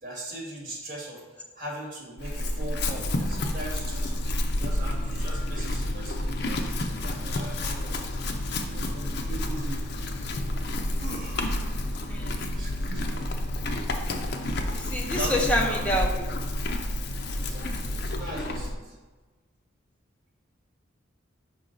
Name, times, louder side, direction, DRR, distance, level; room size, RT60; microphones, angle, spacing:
voice 1, 0.0-1.2 1.6-4.2 4.5-8.2 8.5-9.8 11.0-11.7 12.5-13.3 15.0-15.9 17.3-19.0, right 1 dB, 45° right, -3 dB, 2.0 m, -39 dB
Chewing mastication / Livestock farm animals working animals, 2.2-18.7, left 1 dB, 55° left, 0.5 m, -30 dB
voice 2, 14.7-16.3, equal, 5° left, -1 dB, 0.7 m, -27 dB
5.6 x 4.5 x 3.9 m, 1.3 s
head